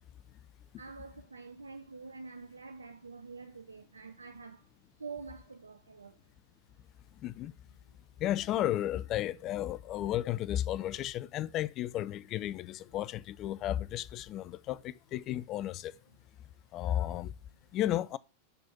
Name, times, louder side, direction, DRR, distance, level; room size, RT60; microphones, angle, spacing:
voice 1, 0.8-4.7 5.0-6.2, right 4 dB, 75° right, 0.4 m, -46 dB
voice 2, 7.2-7.5 8.2-15.9 16.7-17.3 17.7-18.2, left 12 dB, 35° left, 0.3 m, -33 dB
6.6 x 4.2 x 5.8 m
figure-of-eight pair, 90°, 0 cm